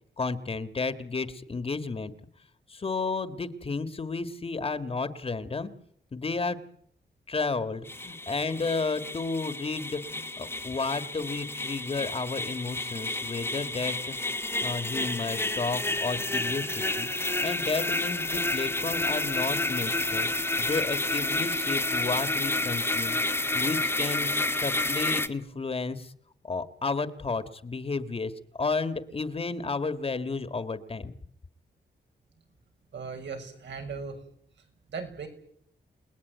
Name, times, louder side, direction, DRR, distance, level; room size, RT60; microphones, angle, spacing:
voice 1, 0.2-2.1 2.7-5.7 6.1-6.6 7.3-14.2 14.6-17.1 17.4-20.3 20.6-23.2 23.5-26.1 26.4-31.1, left 4 dB, 30° left, 11 dB, 1.7 m, -32 dB
sound 1, 7.8-25.3, left 2 dB, 10° left, 1.5 m, -30 dB
voice 2, 32.9-34.2 34.9-35.3, right 5 dB, 80° right, 4 dB, 6.7 m, -37 dB
29.5 x 20.0 x 9.4 m, 0.67 s
wide cardioid pair, 150°, 18 cm